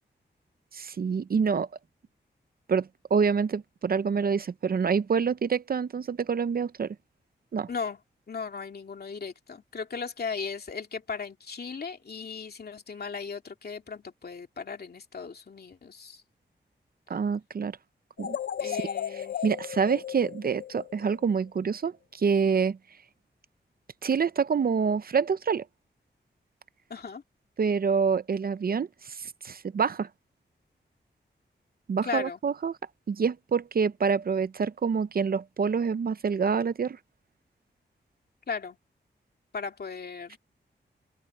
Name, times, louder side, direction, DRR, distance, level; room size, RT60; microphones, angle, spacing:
voice 1, 0.7-1.7 2.7-7.0 7.5-7.7 17.1-17.8 18.2-18.4 18.6-18.8 19.1-22.8 24.0-25.6 27.6-30.1 31.9-32.7 33.1-37.0, right 6 dB, 50° right, 0.6 m, -27 dB
voice 2, 7.7-8.0 8.3-16.2 18.6-19.4 26.9-27.2 32.0-32.4 38.5-38.8 39.5-40.4, left 5 dB, 55° left, 2.6 m, -37 dB
sound 1, 18.2-21.4, left 9 dB, 70° left, 0.5 m, -35 dB
wide cardioid pair, 120°, 19 cm